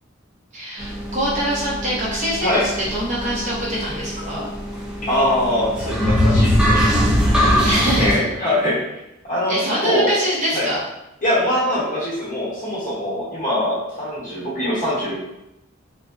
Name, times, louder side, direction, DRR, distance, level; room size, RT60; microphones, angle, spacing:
voice 1, 0.5-4.5 7.6-8.2 9.5-10.8, equal, 40° right, -7 dB, 0.8 m, -24 dB
sound 1, 0.8-8.2, equal, 5° right, 0.4 m, -21 dB
voice 2, 5.0-6.9 7.4-8.8 9.3-10.1 10.5-10.7 11.2-15.1, left 1 dB, 40° left, -6 dB, 0.8 m, -22 dB
2.6 x 2.0 x 2.4 m, 0.92 s
head